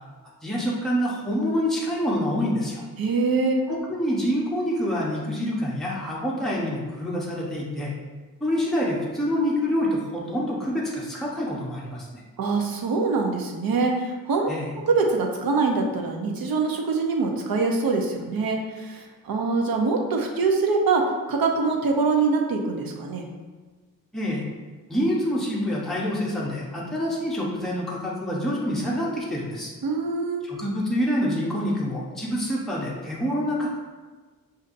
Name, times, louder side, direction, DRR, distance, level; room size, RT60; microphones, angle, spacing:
voice 1, 0.4-2.8 3.7-7.9 8.4-12.2 14.5-14.7 24.1-24.4 24.9-29.7 30.4-33.8, equal, ahead, -5 dB, 0.8 m, -26 dB
voice 2, 3.0-3.6 12.4-14.5 14.8-23.3 29.8-30.4, right 4 dB, 85° right, 2 dB, 0.7 m, -24 dB
6.4 x 2.6 x 2.5 m, 1.3 s
wide cardioid pair, 140°, 34 cm